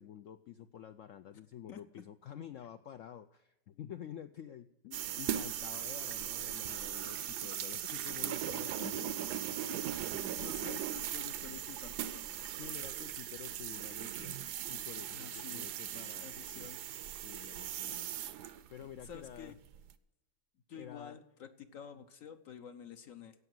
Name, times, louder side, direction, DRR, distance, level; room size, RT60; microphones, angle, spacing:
voice 1, 0.0-9.3 10.1-10.8 12.5-14.4 14.7-16.7 17.2-18.1 18.7-19.5 20.8-21.2, left 10 dB, 75° left, 9 dB, 0.7 m, -50 dB
sound 1, 4.9-19.9, right 11 dB, 75° right, 1.2 m, -39 dB
voice 2, 8.8-9.2 9.6-12.2 15.1-15.7 16.2-16.8 17.7-18.0 19.0-19.6 20.7-23.3, left 7 dB, 55° left, 8 dB, 1.1 m, -49 dB
16.0 x 5.8 x 7.7 m, 0.97 s
omnidirectional pair, 1.9 m